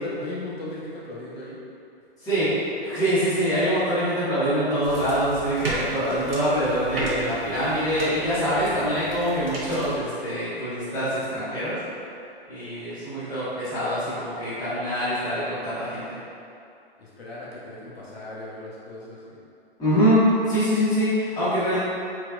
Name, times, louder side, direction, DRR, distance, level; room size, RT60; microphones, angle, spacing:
voice 1, 0.0-1.6 8.9-9.1 17.0-19.4, left 2 dB, 85° left, -7 dB, 1.0 m, -37 dB
voice 2, 2.8-11.7 12.5-16.1 19.8-20.2 20.5-21.8, equal, 10° left, -15 dB, 1.5 m, -24 dB
sound 1, 4.8-10.0, right 1 dB, 75° right, 0.9 m, -35 dB
3.3 x 2.9 x 2.5 m, 2.6 s
hypercardioid pair, 125°, 30 cm